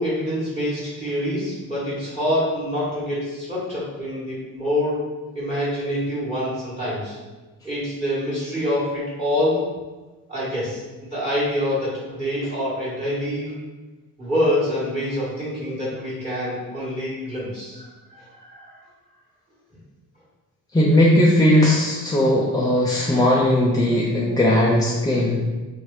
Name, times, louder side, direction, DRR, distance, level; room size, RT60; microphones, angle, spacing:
voice 1, 0.0-5.0 5.3-7.2 7.6-9.6 10.3-10.8 11.1-13.5 14.2-17.9 18.4-18.7, equal, 15° right, -10 dB, 1.3 m, -25 dB
voice 2, 20.7-25.4, left 1 dB, 10° left, -5 dB, 0.3 m, -18 dB
2.8 x 2.4 x 3.1 m, 1.2 s
cardioid pair, 90°, 36 cm